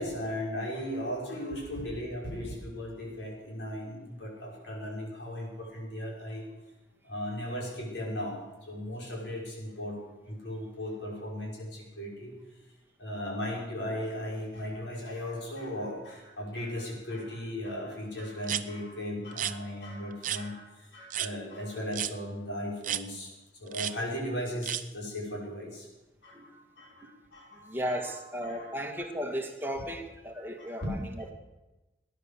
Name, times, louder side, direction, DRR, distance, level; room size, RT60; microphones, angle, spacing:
voice 1, 0.0-6.4 7.0-10.0 10.2-12.3 13.0-23.3 23.6-25.9 26.2-28.1 28.4-28.7 29.0-29.1 29.8-29.9 30.3-31.0, left 1 dB, 75° left, -3 dB, 5.9 m, -37 dB
sound 1, 18.4-18.6 19.3-19.5 20.2-20.4 21.1-21.3 21.9-22.1 22.8-23.0 23.7-23.9 24.6-24.8, right 11 dB, 45° right, 0.6 m, -32 dB
voice 2, 27.7-31.0, equal, 10° right, 2 dB, 1.7 m, -35 dB
19.0 x 10.5 x 7.0 m, 1.1 s
head